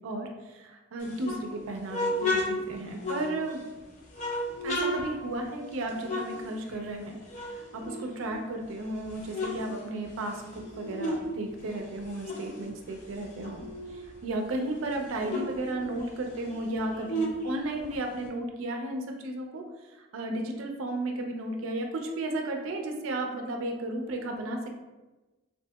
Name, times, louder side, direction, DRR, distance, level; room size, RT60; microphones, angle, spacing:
voice 1, 0.0-3.6 4.6-7.2 7.5-13.6 13.9-19.6 19.9-24.7, right 1 dB, 70° right, 3 dB, 0.4 m, -34 dB
sound 1, 1.0-3.7 4.1-7.0 7.3-8.6 9.0-11.3 11.6-14.1 14.5-14.6 14.8-18.3, left 1 dB, 35° left, 0.4 m, -34 dB
2.7 x 2.6 x 2.2 m, 1.1 s
head